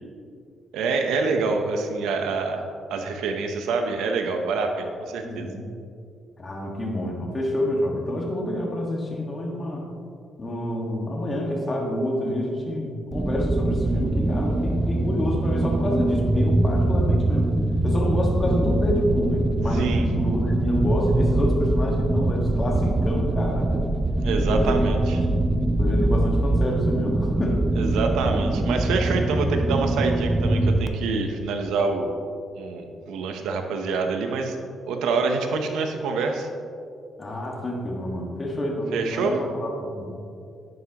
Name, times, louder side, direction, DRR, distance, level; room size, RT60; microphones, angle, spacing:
voice 1, 0.7-2.6 2.9-5.5 19.7-20.1 24.2-25.2 27.8-32.1 32.6-34.6 34.9-36.5 38.9-39.4, right 4 dB, 90° right, 4 dB, 0.8 m, -26 dB
voice 2, 5.2-5.7 6.4-9.9 10.4-17.5 17.8-23.8 24.5-24.8 25.3-25.4 25.8-27.6 37.2-40.2, left 1 dB, 30° left, -1 dB, 1.6 m, -28 dB
sound 1, 13.1-30.9, right 2 dB, 15° right, 0.5 m, -23 dB
11.0 x 7.7 x 3.0 m, 2.4 s
cardioid pair, 90°, 0 cm